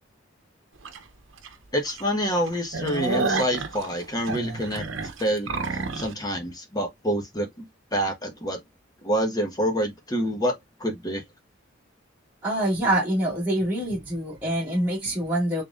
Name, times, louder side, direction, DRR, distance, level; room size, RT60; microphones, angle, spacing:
sound 1, 0.9-1.0 1.4-1.5 1.9-2.0 2.4-6.1, right 3 dB, 85° right, 0.9 m, -30 dB
voice 1, 1.7-4.8 5.2-7.7 7.9-8.6 9.0-10.5 10.8-11.2, equal, 20° left, 1.2 m, -27 dB
voice 2, 12.4-15.6, right 1 dB, 10° right, 1.8 m, -25 dB
4.5 x 3.7 x 2.4 m
head